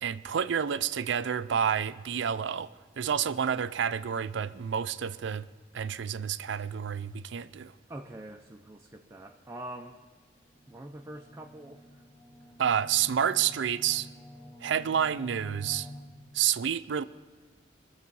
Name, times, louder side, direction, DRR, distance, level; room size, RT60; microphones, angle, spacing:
voice 1, 0.0-2.7 3.0-5.5 5.7-7.7 12.6-14.1 14.6-15.9 16.3-17.0, right 8 dB, 65° right, 0.4 m, -29 dB
voice 2, 7.9-10.0 10.7-12.0, right 1 dB, 15° right, 0.5 m, -44 dB
sound 1, 10.4-16.0, equal, 15° left, 0.9 m, -48 dB
22.0 x 7.4 x 5.4 m
head